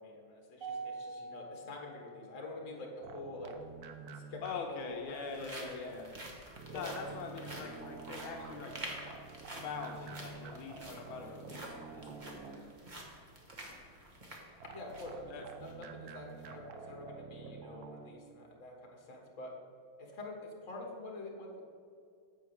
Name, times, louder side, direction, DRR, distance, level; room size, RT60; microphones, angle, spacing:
voice 1, 0.0-3.5 4.1-4.4 4.7-5.9 6.7-7.0 14.7-19.6 20.0-21.7, left 2 dB, 40° left, 0 dB, 1.5 m, -46 dB
Mallet percussion, 0.6-3.0, right 4 dB, 60° right, 1.6 m, -45 dB
sound 1, 3.0-5.0 6.6-12.9 14.6-18.1, right 5 dB, 75° right, 0.8 m, -49 dB
sound 2, 3.6-3.7 4.6-15.2 15.6-15.7 16.2-16.5, right 1 dB, 30° right, 0.9 m, -49 dB
voice 2, 4.4-6.1 6.7-8.8 9.4-12.4 15.3-15.4, left 5 dB, 75° left, 2 dB, 1.5 m, -43 dB
7.7 x 4.6 x 6.9 m, 2.3 s
omnidirectional pair, 2.3 m